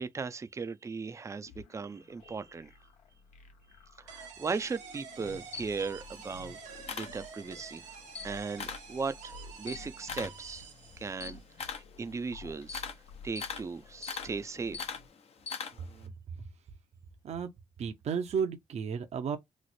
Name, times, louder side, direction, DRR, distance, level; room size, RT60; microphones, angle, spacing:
voice 1, 0.0-2.7 4.0-7.9 8.2-9.3 9.6-10.6 11.0-12.8 13.2-15.0, right 4 dB, 25° right, 0.4 m, -37 dB
sound 1, 1.5-15.1, left 3 dB, 85° left, 1.0 m, -53 dB
sound 2, 4.1-11.4, right 6 dB, 85° right, 1.1 m, -49 dB
Camera, 5.1-7.7 8.0-8.9 9.3-16.0, left 6 dB, 60° left, 0.7 m, -41 dB
voice 2, 15.7-16.1 17.2-17.5 17.8-19.4, right 6 dB, 65° right, 0.7 m, -33 dB
3.1 x 2.0 x 4.0 m
cardioid pair, 85°, 12 cm